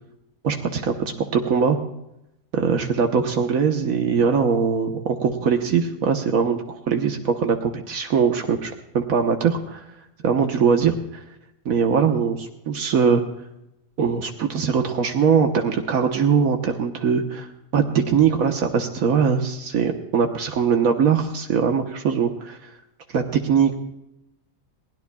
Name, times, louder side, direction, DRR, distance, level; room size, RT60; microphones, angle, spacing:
voice 1, 0.4-0.9 1.3-1.8 2.5-9.8 10.2-11.2 11.6-13.2 14.0-17.5 17.7-22.7 23.1-23.7, right 6 dB, 75° right, 4 dB, 1.5 m, -21 dB
21.5 x 17.0 x 2.3 m, 0.87 s
omnidirectional pair, 1.5 m